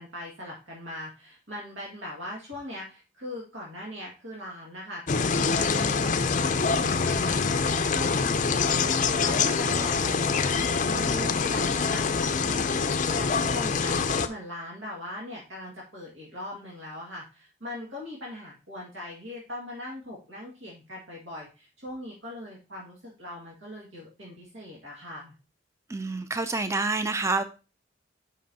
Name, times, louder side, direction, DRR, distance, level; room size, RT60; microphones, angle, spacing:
voice 1, 0.0-8.2 8.5-8.9 9.2-25.3, left 1 dB, 90° right, 2.0 m, -40 dB
sound 1, 5.1-14.3, left 5 dB, 40° left, 0.5 m, -25 dB
voice 2, 25.9-27.4, right 3 dB, 15° right, 0.4 m, -27 dB
7.4 x 5.5 x 2.8 m
head